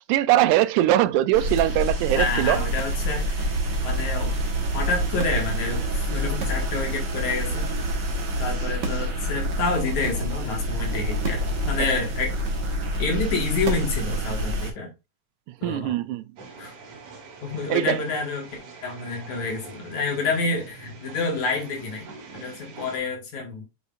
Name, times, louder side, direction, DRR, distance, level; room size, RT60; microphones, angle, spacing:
voice 1, 0.1-2.6 15.6-16.2 17.7-18.0, right 13 dB, 90° right, 2.0 m, -21 dB
sound 1, 1.3-14.7, right 1 dB, 45° right, 1.5 m, -27 dB
voice 2, 2.1-3.5 3.8-4.3 4.7-8.0 8.4-12.3 13.0-14.9 15.6-16.0 16.6-16.7 17.4-18.5 18.8-23.6, left 3 dB, 75° left, 3.2 m, -28 dB
sound 2, 16.4-23.0, right 4 dB, 75° right, 3.3 m, -44 dB
7.8 x 5.4 x 2.5 m
omnidirectional pair, 3.4 m